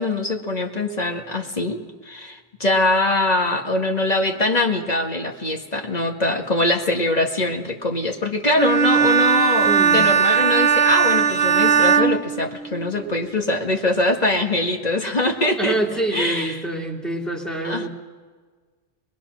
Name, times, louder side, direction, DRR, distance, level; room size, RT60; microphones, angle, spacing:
voice 1, 0.0-15.8 16.1-16.6 17.6-17.9, left 2 dB, 40° left, 2 dB, 1.9 m, -23 dB
Bowed string instrument, 8.6-13.1, right 7 dB, 75° right, 1.1 m, -18 dB
voice 2, 9.6-10.0 15.6-17.9, right 2 dB, ahead, -2 dB, 2.8 m, -26 dB
24.5 x 20.5 x 6.2 m, 1.5 s
omnidirectional pair, 1.1 m